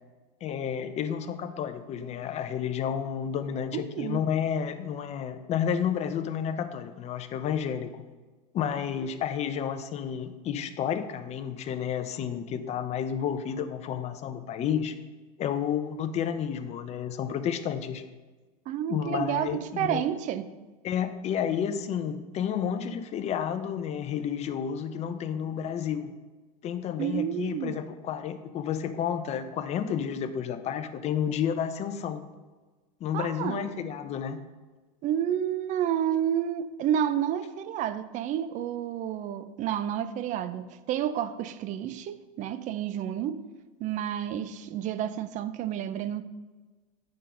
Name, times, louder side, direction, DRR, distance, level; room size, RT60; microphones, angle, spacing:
voice 1, 0.4-8.0 8.5-14.9 15.4-18.0 18.9-20.0 20.8-26.1 26.6-32.2 33.0-34.4, left 8 dB, 35° left, 0.6 m, -31 dB
voice 2, 3.7-4.2 18.7-20.5 27.0-27.8 33.1-33.8 35.0-43.4 43.8-46.2, right 10 dB, 40° right, 0.5 m, -30 dB
8.7 x 3.8 x 5.6 m
supercardioid pair, 115°, 19 cm